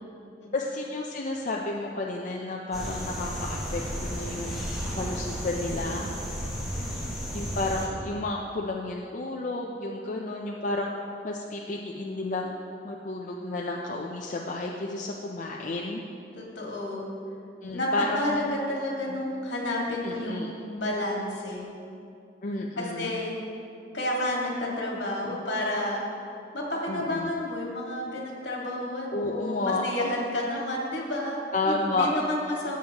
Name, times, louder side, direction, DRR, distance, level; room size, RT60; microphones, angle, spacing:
voice 1, 0.5-4.6 5.0-6.1 7.3-10.9 11.2-12.5 12.8-16.0 17.6-18.5 19.1-19.2 20.0-20.5 22.4-23.2 25.2-25.4 26.9-27.3 29.1-29.9 31.5-32.1, left 2 dB, 45° left, -1 dB, 0.5 m, -31 dB
sound 1, 2.7-7.9, equal, ahead, 1.9 m, -33 dB
voice 2, 16.3-17.1 17.7-21.6 22.8-23.3 23.9-26.1 26.5-31.4 31.7-32.8, left 1 dB, 75° left, -3 dB, 1.8 m, -30 dB
14.0 x 7.3 x 2.9 m, 2.6 s
head